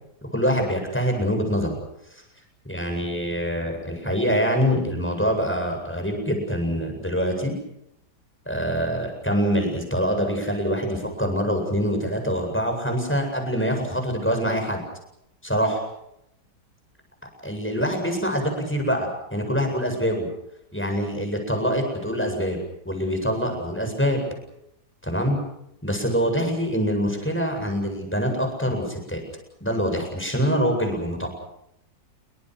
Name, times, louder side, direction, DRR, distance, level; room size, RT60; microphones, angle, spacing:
voice 1, 0.3-1.8 2.7-7.5 8.5-14.8 15.4-15.8 17.4-20.3 20.7-22.6 22.8-24.2 25.0-25.4 25.8-29.2 29.6-31.3, equal, 5° left, 3 dB, 7.9 m, -25 dB
28.5 x 24.5 x 6.4 m, 0.80 s
omnidirectional pair, 1.8 m